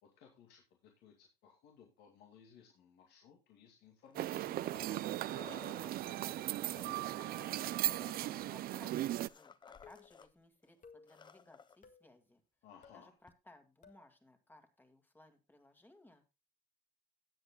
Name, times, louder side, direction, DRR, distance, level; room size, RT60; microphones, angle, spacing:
voice 1, 0.0-4.8 12.6-13.1, left 7 dB, 80° left, 1 dB, 2.4 m, -61 dB
sound 1, 4.0-5.9 6.6-10.3 10.6-10.7 11.0-11.8 13.3-13.4, left 6 dB, 25° left, 0.7 m, -57 dB
sound 2, 4.2-9.3, right 14 dB, 60° right, 0.5 m, -37 dB
voice 2, 6.0-12.4 12.9-16.3, left 1 dB, 10° left, 7 dB, 2.0 m, -61 dB
sound 3, 6.8-7.2 7.8-8.2 8.8-9.1 9.8-10.1 10.8-11.2 11.8-12.1 12.8-13.1 13.8-14.1, left 6 dB, 50° left, 1.8 m, -60 dB
18.0 x 7.9 x 2.3 m, 0.27 s
cardioid pair, 110°, 17 cm